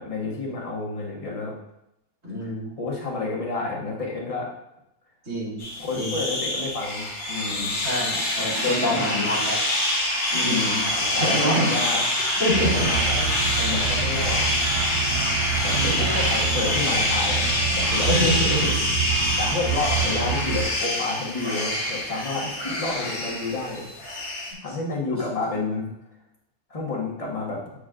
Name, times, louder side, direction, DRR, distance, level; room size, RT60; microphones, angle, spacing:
voice 1, 0.0-1.5 2.4-2.5 2.8-4.5 5.8-7.7 8.7-9.3 10.3-12.1 12.7-14.5 15.6-17.5 17.8-18.1 19.4-23.9 24.6-25.9 26.7-27.6, left 3 dB, 25° left, -3 dB, 1.2 m, -30 dB
voice 2, 2.2-2.7 5.2-5.6 5.9-6.2 7.8-9.6 10.3-10.6 11.1-11.7 12.4-12.9 15.7-16.2 18.1-18.9 24.7-24.8 25.1-25.2, equal, 55° right, -8 dB, 2.9 m, -26 dB
sound 1, 5.6-24.5, left 1 dB, 60° left, 2.2 m, -25 dB
sound 2, 12.5-20.6, right 7 dB, 30° right, 1.2 m, -28 dB
8.1 x 5.0 x 2.5 m, 0.83 s
omnidirectional pair, 1.6 m